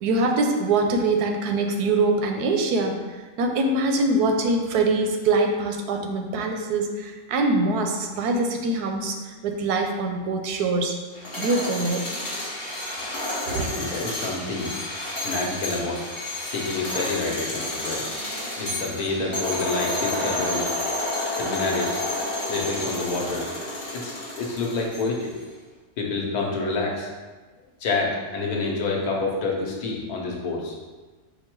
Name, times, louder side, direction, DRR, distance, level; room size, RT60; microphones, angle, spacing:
voice 1, 0.0-10.9 11.4-12.0 13.5-13.7, right 2 dB, 85° right, 3 dB, 1.1 m, -24 dB
sound 1, 11.1-25.3, left 1 dB, 25° left, 0.8 m, -30 dB
voice 2, 13.5-14.7 15.2-16.0 16.5-18.0 18.6-20.7 21.4-22.0 22.5-23.5 23.9-25.3 26.0-27.1 27.8-30.7, left 3 dB, 75° left, -1 dB, 1.3 m, -28 dB
5.3 x 2.2 x 4.4 m, 1.3 s
omnidirectional pair, 1.6 m